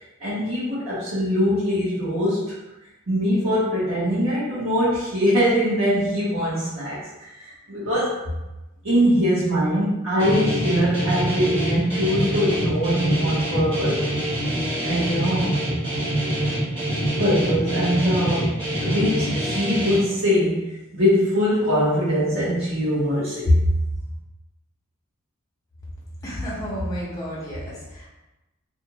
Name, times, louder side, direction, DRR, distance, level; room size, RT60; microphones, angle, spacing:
voice 1, 0.2-2.5 3.1-7.0 7.4-8.2 8.8-14.0 14.8-15.5 17.2-18.5 18.8-23.6, equal, 70° right, -12 dB, 1.0 m, -22 dB
Guitar, 10.2-20.0, right 1 dB, 25° right, 1.0 m, -25 dB
voice 2, 26.2-28.1, equal, 15° left, -8 dB, 0.8 m, -31 dB
2.5 x 2.5 x 2.9 m, 1.0 s
head